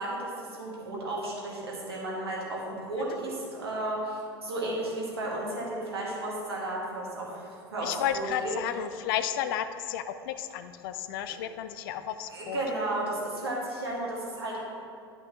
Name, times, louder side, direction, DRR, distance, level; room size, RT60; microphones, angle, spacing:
voice 1, 0.0-8.5 11.3-11.4 12.3-14.6, right 1 dB, 75° right, -4 dB, 1.9 m, -33 dB
voice 2, 7.8-12.6, left 10 dB, 60° left, 11 dB, 0.5 m, -32 dB
12.0 x 5.4 x 3.0 m, 2.4 s
figure-of-eight pair, 75°, 13 cm